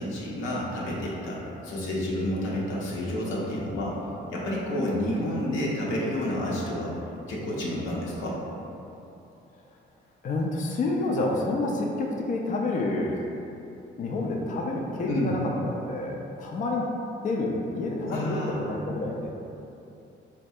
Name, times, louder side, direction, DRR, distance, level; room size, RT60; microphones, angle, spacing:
voice 1, 0.0-4.0 4.3-7.0 7.3-8.4 15.1-15.3 18.1-18.6, left 1 dB, 90° left, -5 dB, 0.7 m, -30 dB
voice 2, 10.2-13.2 14.0-15.4 15.7-16.9 17.2-19.3, left 2 dB, 40° left, -1 dB, 0.4 m, -28 dB
4.0 x 2.2 x 2.7 m, 2.8 s
cardioid pair, 90°, 20 cm